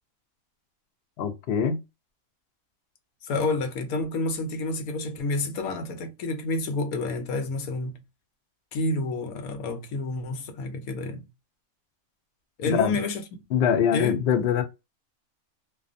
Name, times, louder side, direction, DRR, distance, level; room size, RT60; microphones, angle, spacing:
voice 1, 1.2-1.8 12.6-13.0 13.5-14.6, left 7 dB, 65° left, 0.6 m, -23 dB
voice 2, 3.2-8.0 8.7-11.3 12.6-13.2 13.9-14.2, left 3 dB, 85° left, 1.1 m, -29 dB
2.4 x 2.3 x 2.4 m
omnidirectional pair, 1.5 m